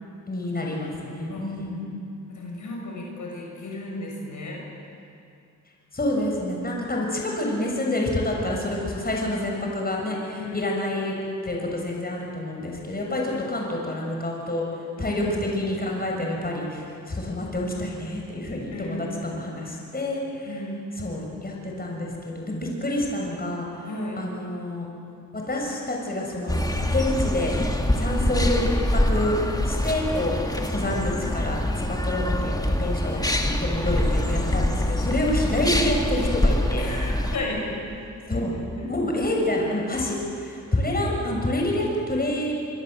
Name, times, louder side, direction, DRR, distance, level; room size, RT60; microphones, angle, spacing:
voice 1, 0.3-1.9 5.9-11.1 11.4-14.6 15.0-20.5 21.0-23.9 24.2-24.9 25.3-26.6 26.9-27.6 28.0-29.4 29.6-30.4 30.7-36.9 38.3-38.5 38.8-42.5, left 1 dB, 30° left, -1 dB, 7.0 m, -28 dB
voice 2, 2.3-4.6 10.3-10.6 15.0-15.4 18.7-19.0 20.5-20.8 23.8-24.2 36.8-37.8 38.3-38.4 38.8-38.9, left 2 dB, 65° left, -1 dB, 6.8 m, -34 dB
sound 1, 26.5-37.4, left 1 dB, 10° left, 2.7 m, -24 dB
25.5 x 24.5 x 8.1 m, 2.5 s
cardioid pair, 75°, 33 cm